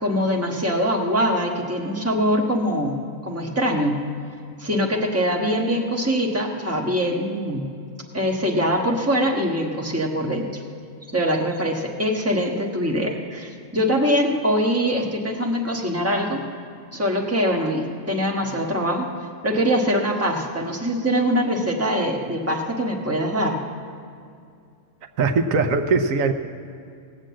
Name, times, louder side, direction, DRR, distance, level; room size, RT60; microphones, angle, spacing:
voice 1, 0.0-4.0 4.6-7.6 8.1-10.6 11.1-16.4 16.9-19.1 19.4-23.6, equal, 10° right, 0 dB, 1.2 m, -23 dB
voice 2, 25.2-26.3, right 4 dB, 80° right, 6 dB, 1.2 m, -20 dB
18.5 x 7.6 x 7.4 m, 2.4 s
omnidirectional pair, 1.4 m